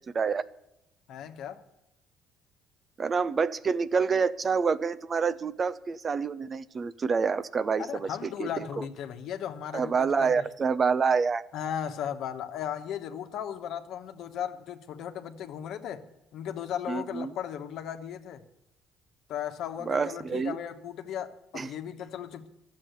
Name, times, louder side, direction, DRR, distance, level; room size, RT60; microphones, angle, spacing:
voice 1, 1.1-1.6 7.8-10.4 11.5-16.0 16.3-18.4 19.3-22.5, left 9 dB, 70° left, 1.1 m, -36 dB
voice 2, 3.0-8.1 8.4-8.9 9.7-11.4 16.9-17.3 19.8-20.6 21.5-21.7, right 5 dB, 40° right, 0.6 m, -27 dB
12.5 x 7.6 x 9.2 m
supercardioid pair, 80°, 0 cm